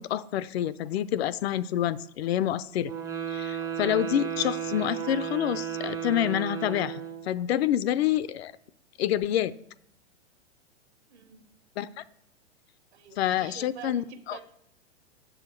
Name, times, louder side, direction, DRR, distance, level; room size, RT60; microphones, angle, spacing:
voice 1, 0.0-2.9 3.3-8.5 9.0-9.5 11.8-12.0 13.2-14.4, left 11 dB, 60° left, 16 dB, 0.5 m, -28 dB
sound 1, 2.8-7.4, right 9 dB, 10° right, 0.5 m, -34 dB
voice 2, 11.1-11.4 12.9-14.4, right 9 dB, 65° right, 7 dB, 1.3 m, -46 dB
7.8 x 6.5 x 4.5 m, 0.73 s
hypercardioid pair, 125°, 35 cm